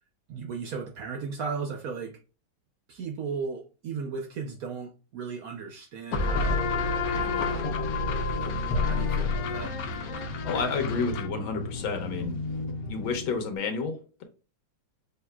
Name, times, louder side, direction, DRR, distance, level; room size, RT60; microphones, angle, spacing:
voice 1, 0.3-2.2 2.9-6.7 7.0-7.8 8.3-9.7, right 5 dB, 65° right, 0.9 m, -36 dB
sound 1, 6.1-13.5, left 3 dB, 70° left, 1.4 m, -29 dB
voice 2, 10.4-12.4 12.9-14.2, left 4 dB, 85° left, 1.9 m, -30 dB
6.9 x 2.8 x 2.2 m
omnidirectional pair, 2.1 m